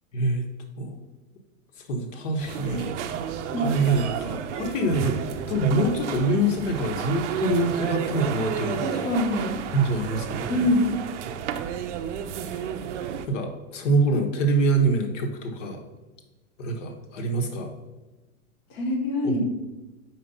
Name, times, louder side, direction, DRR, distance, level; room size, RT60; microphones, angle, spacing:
voice 1, 0.1-0.4 0.8-1.0 1.8-2.9 3.6-5.2 5.5-8.8 9.7-10.7 12.4-12.6 13.3-15.8 16.6-17.7 19.2-19.4, right 2 dB, 55° left, 4 dB, 1.2 m, -25 dB
sound 1, 2.4-13.3, right 8 dB, 55° right, 0.5 m, -32 dB
voice 2, 8.8-9.6 10.5-11.0 18.7-19.4, left 1 dB, 25° left, 0 dB, 0.4 m, -24 dB
4.6 x 4.3 x 5.4 m, 1.1 s
hypercardioid pair, 150°, 45 cm